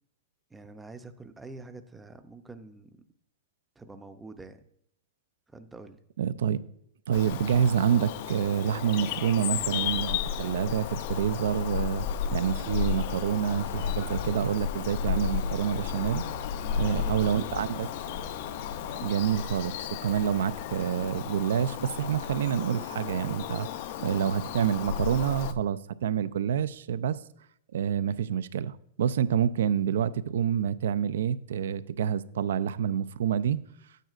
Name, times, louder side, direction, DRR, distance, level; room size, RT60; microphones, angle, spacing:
voice 1, 0.5-3.0 3.8-4.6 5.5-6.0 16.6-17.4, right 3 dB, 5° right, 0.5 m, -46 dB
voice 2, 6.2-6.6 7.1-12.1 12.3-16.2 16.8-17.9 19.0-23.7 24.0-27.2 27.7-33.6, right 8 dB, 80° right, 0.4 m, -27 dB
Bird vocalization bird call bird song, 7.1-25.5, left 9 dB, 50° left, 0.5 m, -33 dB
sound 1, 9.3-9.5 9.9-10.1 10.3-11.2 11.5-11.7 12.0-13.3 13.6-13.9 14.1-15.0 15.3-15.5 15.8-16.0 16.3-16.5 16.8-17.6 17.9-18.2, left 4 dB, 90° left, 3.1 m, -61 dB
sound 2, 12.4-19.0, left 5 dB, 65° left, 1.2 m, -43 dB
12.5 x 9.1 x 2.5 m
supercardioid pair, 155°, 0 cm